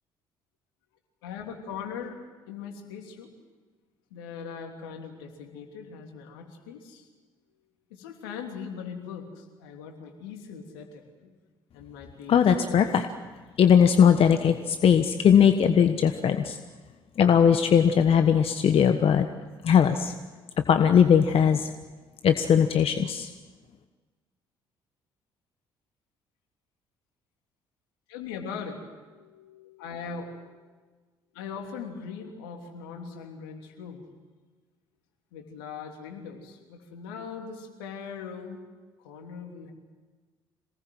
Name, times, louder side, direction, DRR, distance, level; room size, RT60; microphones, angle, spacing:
voice 1, 1.2-3.3 4.1-7.1 7.9-11.4 11.7-12.9 28.1-28.8 29.1-30.6 31.3-34.1 35.3-38.6 39.0-39.7, left 6 dB, 80° left, 3 dB, 3.3 m, -40 dB
voice 2, 12.3-13.0 13.6-16.6 17.2-19.3 19.6-20.1 20.6-21.7 22.2-23.3, left 8 dB, 55° left, 8 dB, 1.3 m, -20 dB
27.0 x 19.5 x 7.9 m, 1.4 s
hypercardioid pair, 50°, 12 cm